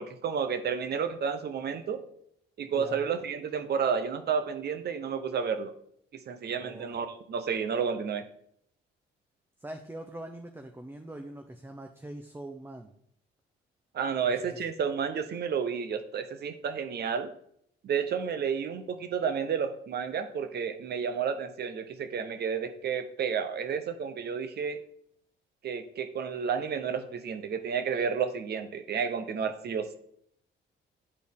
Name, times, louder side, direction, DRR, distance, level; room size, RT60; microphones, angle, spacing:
voice 1, 0.0-2.0 2.6-5.7 6.1-8.2 13.9-17.3 17.8-24.8 25.6-30.0, right 6 dB, 55° right, 10 dB, 0.8 m, -31 dB
voice 2, 6.6-6.9 9.6-12.9, right 1 dB, 10° right, 5 dB, 0.6 m, -43 dB
9.8 x 4.1 x 3.6 m, 0.69 s
cardioid pair, 90°, 20 cm